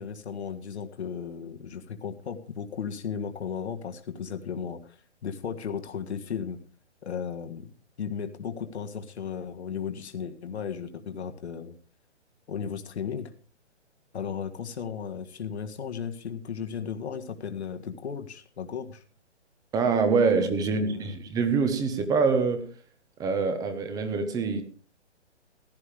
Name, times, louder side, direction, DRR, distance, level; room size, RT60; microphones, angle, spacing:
voice 1, 0.0-6.6 7.0-7.7 8.0-11.8 12.5-13.3 14.1-19.0 20.8-21.2, left 7 dB, 65° left, 1.7 m, -35 dB
voice 2, 19.7-22.7 23.2-24.6, right 4 dB, 10° right, 0.9 m, -25 dB
15.5 x 11.0 x 3.4 m
hypercardioid pair, 145°, 35 cm